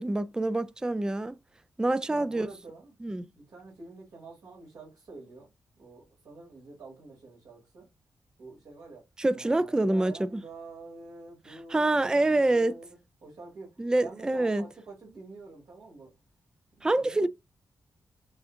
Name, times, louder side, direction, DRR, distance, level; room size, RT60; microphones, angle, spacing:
voice 1, 0.0-1.4 1.8-2.5 3.0-3.3 9.2-10.4 11.7-12.7 13.8-14.6 16.8-17.3, right 2 dB, 10° right, 0.3 m, -26 dB
voice 2, 2.1-2.9 3.4-5.5 5.8-7.9 8.4-9.1 9.3-12.9 13.2-16.1 16.8-17.3, right 3 dB, 70° right, 2.3 m, -47 dB
6.9 x 2.4 x 2.7 m
cardioid pair, 90°, 7 cm